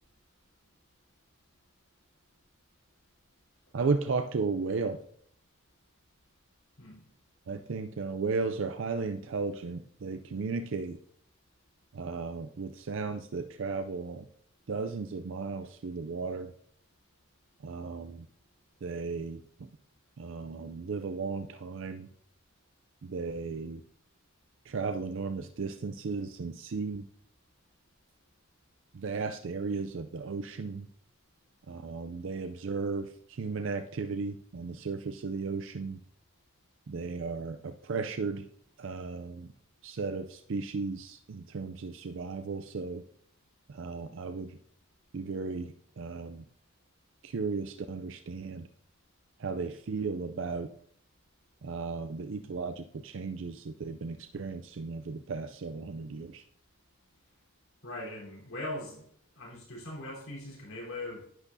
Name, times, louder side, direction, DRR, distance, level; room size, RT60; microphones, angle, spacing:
voice 1, 3.7-5.0 7.5-11.0 11.9-14.2 14.7-16.5 17.6-18.3 18.8-19.4 20.2-22.1 23.0-23.8 24.7-27.1 28.9-30.9 31.7-36.0 36.9-38.5 38.8-39.5 39.8-43.0 43.7-44.6 45.1-46.4 47.2-48.7 49.4-50.7 51.6-56.4, right 4 dB, 60° right, 8 dB, 0.4 m, -35 dB
voice 2, 57.8-59.0 59.4-61.3, left 1 dB, 85° left, -4 dB, 3.9 m, -40 dB
11.0 x 8.3 x 2.7 m, 0.64 s
head